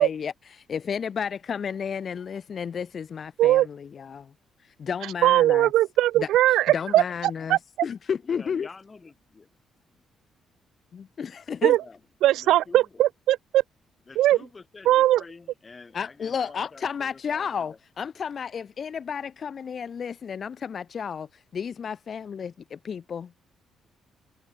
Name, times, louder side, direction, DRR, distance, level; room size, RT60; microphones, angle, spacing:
voice 1, 0.0-4.3 4.6-5.7 6.1-6.3 6.7-8.7 10.9-11.8 15.9-23.4, left 7 dB, 50° left, 1.7 m, -32 dB
voice 2, 5.2-6.6 6.9-7.0 7.5-7.6 11.6-11.8 12.2-13.6 14.2-14.4 14.9-15.2, right 14 dB, 85° right, 0.8 m, -19 dB
voice 3, 8.2-9.5 9.9-10.0 11.8-12.0 12.3-13.0 14.1-17.8, left 4 dB, 30° left, 5.6 m, -48 dB
cardioid pair, 90°, 0 cm